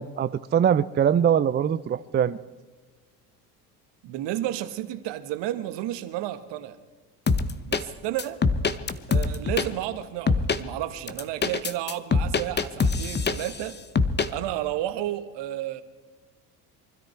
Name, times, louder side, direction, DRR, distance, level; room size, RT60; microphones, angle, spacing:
voice 1, 0.0-2.4, right 8 dB, 25° right, 14 dB, 0.4 m, -22 dB
voice 2, 4.0-6.8 7.6-8.4 9.1-13.8 14.3-15.8, right 13 dB, 60° right, 10 dB, 1.5 m, -32 dB
sound 1, 7.3-7.8 8.2-9.7 10.3-10.6 11.1-13.6 14.0-14.3, left 4 dB, 20° left, 1.0 m, -23 dB
24.0 x 13.0 x 4.5 m, 1.3 s
hypercardioid pair, 70°, 47 cm